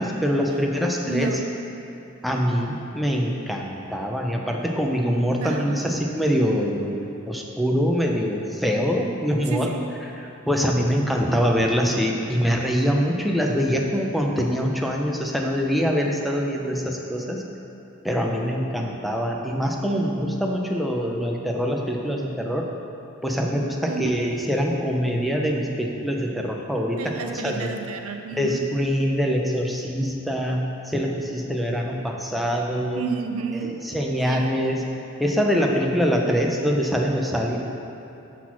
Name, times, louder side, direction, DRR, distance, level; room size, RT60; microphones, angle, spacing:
voice 1, 0.0-1.4 2.2-9.7 10.5-17.4 18.0-22.7 23.2-27.7 28.3-33.0 33.6-34.8 35.2-37.6, equal, ahead, 0 dB, 0.5 m, -24 dB
voice 2, 1.1-1.6 5.4-5.9 9.5-9.9 23.9-24.2 26.9-28.7 32.9-33.8 34.3-34.5, right 5 dB, 85° right, 5 dB, 0.5 m, -31 dB
6.1 x 4.1 x 5.8 m, 2.9 s
head